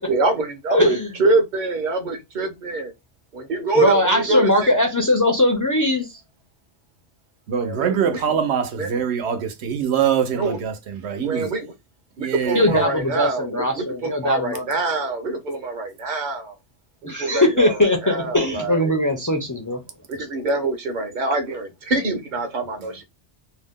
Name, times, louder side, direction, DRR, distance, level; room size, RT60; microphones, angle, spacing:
voice 1, 0.1-2.9 3.3-4.7 7.6-8.2 8.8-8.9 10.3-10.6 11.2-11.7 12.2-16.6 17.0-19.0 20.1-23.0, right 3 dB, 50° right, 0.7 m, -25 dB
voice 2, 0.7-1.1 3.7-6.2 12.5-14.7 17.1-19.8, left 1 dB, 30° left, 0.3 m, -20 dB
voice 3, 7.5-11.5 12.2-12.8, right 7 dB, 80° right, 0.9 m, -23 dB
2.7 x 2.1 x 3.5 m
omnidirectional pair, 1.1 m